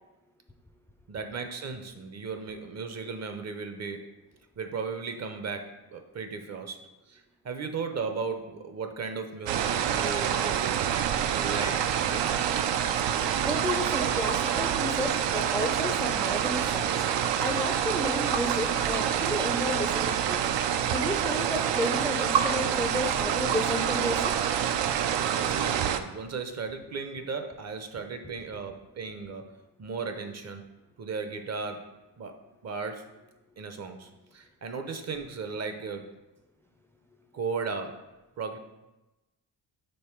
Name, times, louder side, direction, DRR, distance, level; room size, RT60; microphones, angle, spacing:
voice 1, 1.1-4.1 4.6-6.8 7.1-10.7 11.3-12.3 25.3-29.5 29.8-30.6 31.0-31.9 32.2-33.1 33.6-36.1 37.3-38.0 38.4-38.6, right 4 dB, 40° right, 7 dB, 0.6 m, -36 dB
sound 1, 9.5-26.0, right 9 dB, 85° right, 0.5 m, -27 dB
voice 2, 13.4-17.0 17.4-20.4 20.9-24.4, left 1 dB, 5° left, 4 dB, 0.4 m, -32 dB
5.3 x 4.0 x 4.4 m, 1.0 s
wide cardioid pair, 135°, 42 cm